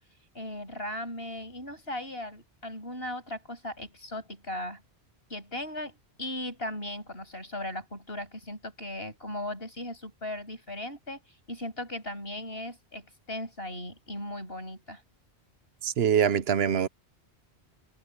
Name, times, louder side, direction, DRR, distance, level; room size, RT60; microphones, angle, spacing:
voice 1, 0.3-4.8 5.3-11.2 11.5-15.0, left 1 dB, 65° left, 8.1 m, -37 dB
voice 2, 15.8-16.9, right 8 dB, 75° right, 1.0 m, -24 dB
omnidirectional pair, 1.1 m